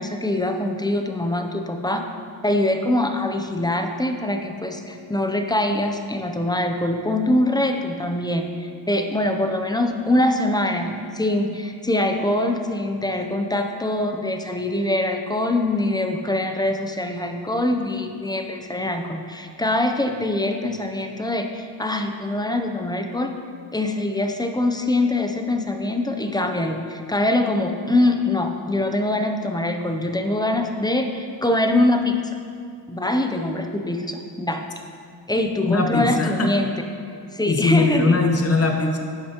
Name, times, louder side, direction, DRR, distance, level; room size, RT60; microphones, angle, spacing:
voice 1, 0.0-2.1 2.4-23.3 23.7-32.2 32.9-34.6 35.3-36.7 37.3-38.2, left 1 dB, 10° left, 4 dB, 0.5 m, -23 dB
voice 2, 35.6-36.5 37.5-39.0, left 3 dB, 35° left, 3 dB, 1.1 m, -20 dB
11.5 x 9.8 x 2.9 m, 2.3 s
wide cardioid pair, 140°, 42 cm